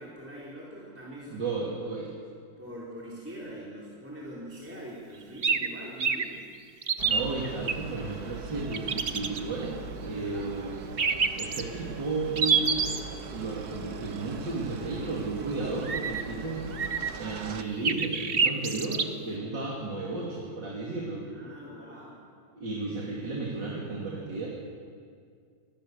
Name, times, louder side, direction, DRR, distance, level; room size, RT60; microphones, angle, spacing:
voice 1, 0.0-1.5 2.6-6.5 10.1-10.5 21.2-22.2, right 1 dB, 5° right, -6 dB, 4.1 m, -43 dB
voice 2, 1.3-2.1 7.0-10.7 11.4-12.8 13.3-16.7 17.2-21.2 22.6-24.5, right 3 dB, 80° right, -4 dB, 3.7 m, -33 dB
sound 1, 5.4-5.7 6.0-6.2 6.8-7.7 8.7-9.4 11.0-11.6 12.4-13.0 15.8-16.2 16.7-17.3 17.8-19.0, right 5 dB, 40° right, 1.0 m, -26 dB
sound 2, 7.0-17.6, right 5 dB, 65° right, 1.7 m, -41 dB
26.0 x 20.5 x 6.9 m, 2.2 s
omnidirectional pair, 1.9 m